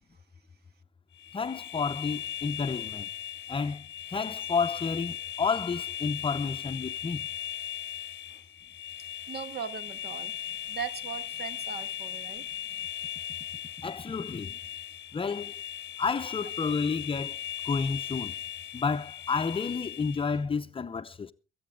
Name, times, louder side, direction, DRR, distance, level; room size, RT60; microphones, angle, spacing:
sound 1, 1.2-20.4, left 10 dB, 65° left, 0.7 m, -38 dB
voice 1, 1.3-3.1 3.5-3.9 4.1-7.2 13.8-14.6 15.1-15.5 16.0-18.3 18.7-21.3, left 5 dB, 25° left, 0.6 m, -31 dB
voice 2, 9.3-10.3 10.7-12.5, right 7 dB, 55° right, 1.4 m, -39 dB
23.5 x 8.7 x 3.7 m
cardioid pair, 90°, 20 cm